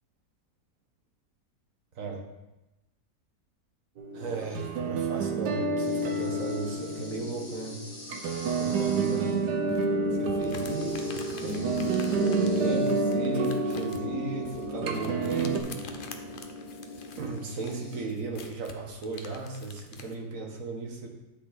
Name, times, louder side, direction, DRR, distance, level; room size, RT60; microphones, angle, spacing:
sound 1, 4.0-15.6, right 3 dB, 90° right, 1.4 m, -30 dB
voice 1, 4.1-7.8 8.6-9.4 10.1-11.8 12.4-15.9 17.2-21.1, right 4 dB, 55° right, 1 dB, 1.5 m, -36 dB
sound 2, 5.8-18.0, equal, 85° left, 2.4 m, -35 dB
sound 3, 9.7-20.2, left 5 dB, 55° left, 0.6 m, -46 dB
10.0 x 5.4 x 4.0 m, 1.0 s
omnidirectional pair, 1.7 m